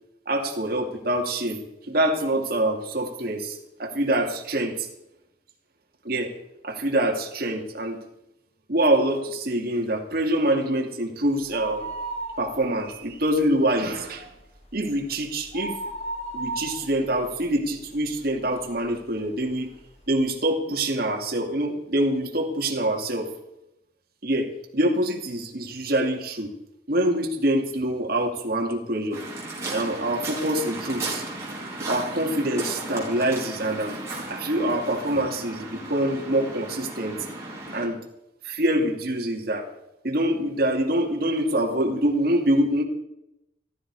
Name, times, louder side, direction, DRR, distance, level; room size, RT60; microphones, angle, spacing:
voice 1, 0.3-4.9 6.0-6.3 6.6-8.0 8.7-11.9 12.4-14.3 14.7-15.8 16.3-19.7 20.1-23.3 24.2-26.5 26.9-29.2 29.7-31.2 31.9-34.0 34.3-37.2 37.7-38.0 38.4-39.7 40.0-42.8, right 1 dB, 55° right, 1 dB, 2.3 m, -25 dB
sound 1, 11.4-13.0 13.4-13.5 13.9-18.3 18.8-18.9 19.7-19.8 20.0-20.1, right 2 dB, 35° left, 2.2 m, -35 dB
Waves surf, 29.1-37.9, right 2 dB, 15° right, 4.5 m, -35 dB
14.0 x 13.5 x 4.8 m, 0.86 s
head